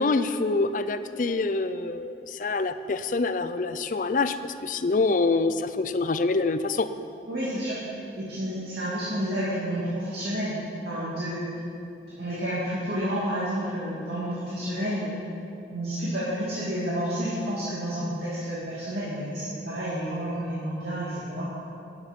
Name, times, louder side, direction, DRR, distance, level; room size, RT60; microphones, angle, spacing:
voice 1, 0.0-6.9, left 3 dB, 45° left, 12 dB, 0.4 m, -26 dB
voice 2, 7.3-7.8 8.2-11.5 12.2-15.2 15.7-21.5, equal, 70° right, -9 dB, 2.3 m, -30 dB
11.5 x 9.7 x 5.3 m, 2.7 s
head